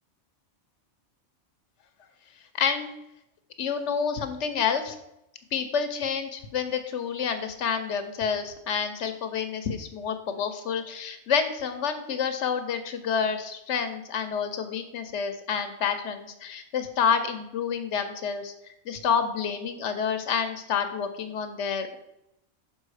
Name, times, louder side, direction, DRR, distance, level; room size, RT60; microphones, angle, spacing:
voice 1, 2.6-2.9 3.6-5.0 5.5-18.5 18.8-22.0, left 6 dB, 75° left, 8 dB, 1.0 m, -28 dB
5.8 x 5.4 x 4.8 m, 0.84 s
omnidirectional pair, 1.2 m